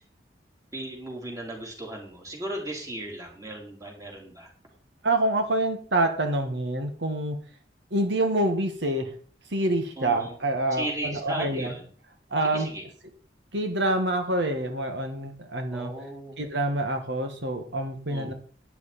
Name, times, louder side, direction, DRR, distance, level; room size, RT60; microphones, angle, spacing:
voice 1, 0.7-4.5 10.0-10.4 10.7-11.9 12.4-12.8 15.7-16.4 18.1-18.3, right 1 dB, 20° right, 0 dB, 3.5 m, -36 dB
voice 2, 5.0-7.4 7.9-9.1 9.5-11.7 12.3-12.7 13.5-15.9 16.4-18.3, right 1 dB, 90° right, 5 dB, 1.8 m, -26 dB
12.0 x 10.0 x 4.3 m, 0.42 s
head